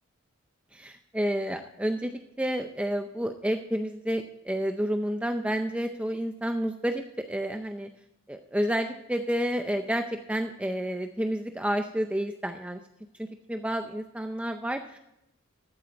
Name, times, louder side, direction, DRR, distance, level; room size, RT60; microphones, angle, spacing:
voice 1, 0.7-2.1 2.4-7.9 8.3-12.8 13.2-15.0, equal, 5° right, 6 dB, 0.5 m, -30 dB
13.5 x 8.0 x 4.4 m, 0.85 s
head